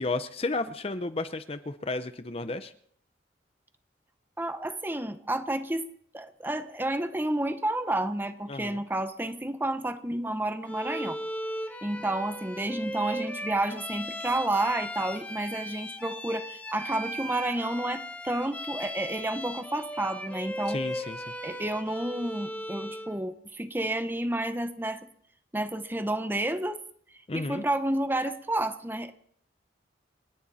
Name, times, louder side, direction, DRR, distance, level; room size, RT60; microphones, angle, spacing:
voice 1, 0.0-2.7 8.5-8.8 20.7-21.2 27.3-27.6, left 2 dB, 30° left, 11 dB, 0.7 m, -32 dB
voice 2, 4.4-5.9 6.1-11.2 11.8-20.8 21.4-25.1 25.5-26.8 27.3-29.1, right 1 dB, 10° right, 9 dB, 0.9 m, -30 dB
Bowed string instrument, 10.7-23.2, equal, 10° left, 1.1 m, -37 dB
30.0 x 10.0 x 4.2 m, 0.63 s
head